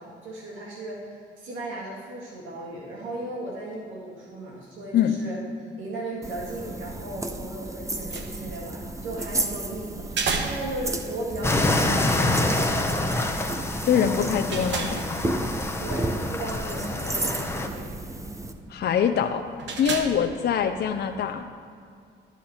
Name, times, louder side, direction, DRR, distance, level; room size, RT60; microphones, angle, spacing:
voice 1, 0.0-5.4 5.8-13.1 13.8-14.3 15.8-18.0, right 1 dB, 85° right, -3 dB, 1.9 m, -36 dB
sound 1, 6.2-18.5, right 2 dB, 15° right, 0.7 m, -33 dB
sound 2, 7.8-21.3, right 4 dB, 65° right, 1.2 m, -37 dB
sound 3, 11.4-17.7, left 2 dB, 10° left, 0.9 m, -27 dB
voice 2, 13.9-15.0 18.7-19.5 19.8-21.4, left 8 dB, 55° left, 5 dB, 0.6 m, -23 dB
12.5 x 7.3 x 4.3 m, 2.3 s
cardioid pair, 90°, 20 cm